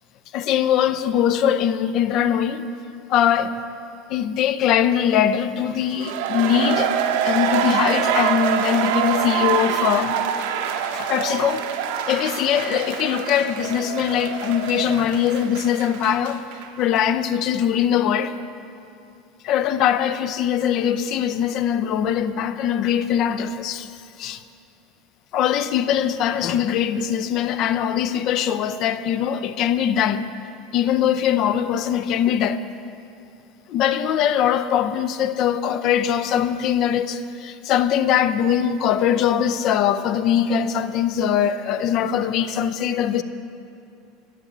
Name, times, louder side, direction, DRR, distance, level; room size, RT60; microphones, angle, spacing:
voice 1, 0.3-2.7 3.1-3.5 4.1-6.9 7.2-10.2 10.9-11.7 12.1-16.4 16.8-18.3 19.4-23.9 24.2-24.4 25.3-30.3 30.7-32.6 33.7-43.2, left 9 dB, 55° left, 0.5 m, -21 dB
sound 1, 5.8-16.7 17.0-17.1, right 8 dB, 75° right, 0.7 m, -25 dB
8.8 x 6.1 x 7.9 m
hypercardioid pair, 90°, 0 cm